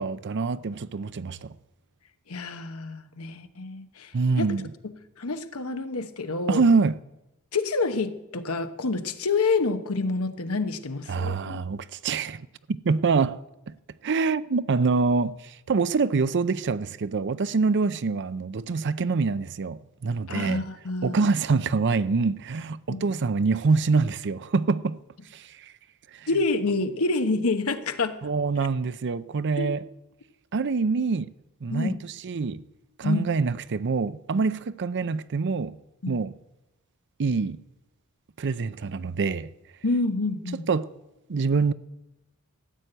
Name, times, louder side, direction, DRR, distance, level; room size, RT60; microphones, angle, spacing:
voice 1, 0.0-1.5 4.1-4.7 6.5-7.0 11.1-13.4 13.7-13.8 14.0-20.6 21.0-25.0 25.3-25.7 26.1-26.3 28.2-29.8 30.5-31.3 31.6-32.0 32.2-32.6 33.0-35.8 36.1-36.3 37.2-37.6 38.4-39.5 40.7-40.9 41.3-41.7, right 4 dB, 55° right, 0.5 m, -25 dB
voice 2, 2.3-4.5 4.8-4.9 5.2-6.6 7.5-11.6 20.3-21.3 22.9-23.1 26.3-28.2 29.6-29.7 31.7-32.0 33.0-33.3 36.0-36.2 39.8-40.7, left 3 dB, 70° left, 1.0 m, -28 dB
14.0 x 8.3 x 8.9 m
head